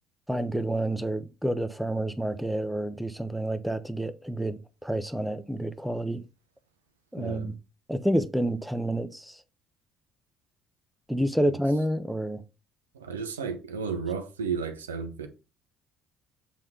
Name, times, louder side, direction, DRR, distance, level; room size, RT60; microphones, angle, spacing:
voice 1, 0.3-6.2 7.1-7.5 7.9-9.4 11.1-12.4, right 1 dB, ahead, 1.0 m, -29 dB
voice 2, 7.2-7.5 12.9-15.3, right 6 dB, 85° right, 0.9 m, -33 dB
7.5 x 3.6 x 4.4 m
hypercardioid pair, 55°, 0 cm